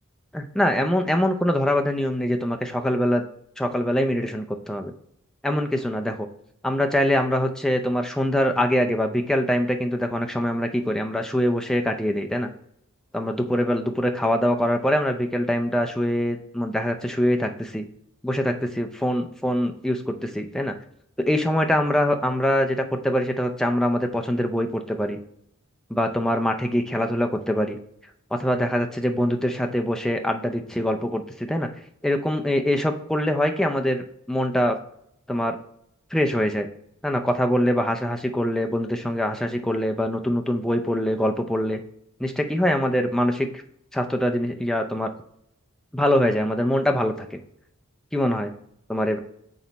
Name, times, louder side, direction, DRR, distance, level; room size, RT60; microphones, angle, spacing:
voice 1, 0.3-3.2 3.6-4.9 5.4-6.3 6.6-12.5 13.1-17.9 18.2-20.7 21.2-25.2 25.9-27.8 28.3-31.7 32.0-34.8 35.3-35.6 36.1-36.7 37.0-41.8 42.2-43.5 43.9-45.1 45.9-47.4 48.1-48.5 48.9-49.2, equal, 5° left, 4 dB, 0.4 m, -23 dB
6.2 x 4.1 x 3.9 m, 0.73 s
head